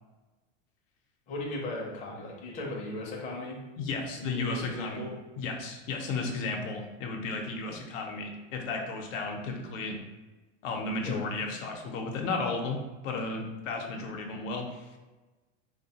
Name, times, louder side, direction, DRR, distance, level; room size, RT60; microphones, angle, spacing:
voice 1, 1.3-3.6 4.2-5.1 11.0-11.2, left 1 dB, 20° left, -2 dB, 0.4 m, -37 dB
voice 2, 3.8-5.0 5.4-10.0 10.6-12.8 13.0-14.9, left 3 dB, 85° left, 2 dB, 0.6 m, -34 dB
2.7 x 2.2 x 2.7 m, 1.2 s
supercardioid pair, 135°, 37 cm